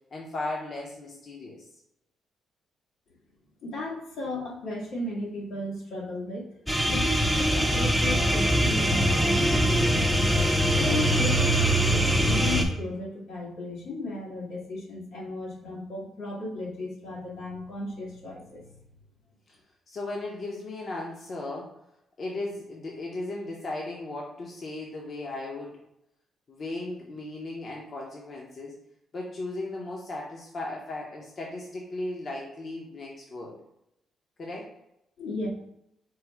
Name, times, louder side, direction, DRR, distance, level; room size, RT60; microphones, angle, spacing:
voice 1, 0.1-1.7 7.6-8.0 19.9-21.7 22.2-25.8 26.5-28.8 29.1-33.6 34.4-34.7, left 2 dB, 45° left, -2 dB, 0.7 m, -36 dB
voice 2, 3.6-6.5 6.9-10.3 10.8-18.7 35.2-35.5, left 2 dB, 85° left, -5 dB, 1.5 m, -35 dB
sound 1, 6.7-12.6, equal, 5° left, 0.5 m, -23 dB
4.6 x 2.1 x 4.6 m, 0.79 s
cardioid pair, 110°, 0 cm